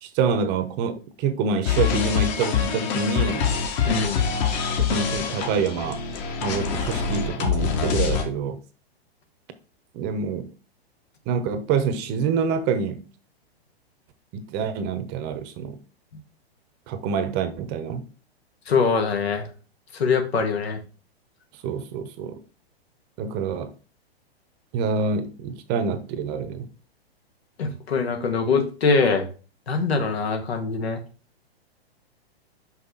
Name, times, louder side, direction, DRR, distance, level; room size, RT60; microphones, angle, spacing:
voice 1, 0.0-3.5 4.9-6.0 6.4-8.6 9.9-10.5 11.3-13.1 14.3-15.8 16.9-18.1 21.6-22.4 23.2-23.7 24.7-26.7, right 5 dB, 30° right, 0.9 m, -26 dB
sound 1, 1.6-8.2, left 7 dB, 45° left, 1.6 m, -25 dB
voice 2, 3.8-4.3 18.7-19.5 19.9-20.8 27.6-29.3 29.7-31.0, left 4 dB, 80° left, 1.8 m, -23 dB
5.8 x 5.4 x 3.9 m
hypercardioid pair, 120°, 31 cm